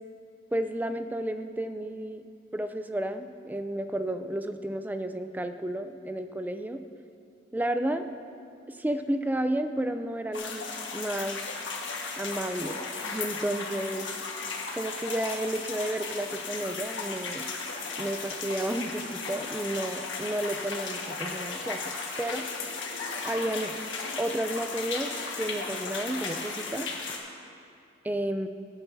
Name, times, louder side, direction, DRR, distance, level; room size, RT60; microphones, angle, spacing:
voice 1, 0.5-2.2 2.5-6.8 7.5-8.1 8.7-11.4 12.2-14.1 14.7-17.4 18.0-21.8 22.2-22.4 23.2-23.7 24.2-26.9 28.0-28.5, right 1 dB, 10° right, 8 dB, 0.4 m, -32 dB
sound 1, 10.3-27.2, left 4 dB, 85° left, 1.4 m, -35 dB
17.5 x 9.9 x 2.7 m, 2.5 s
head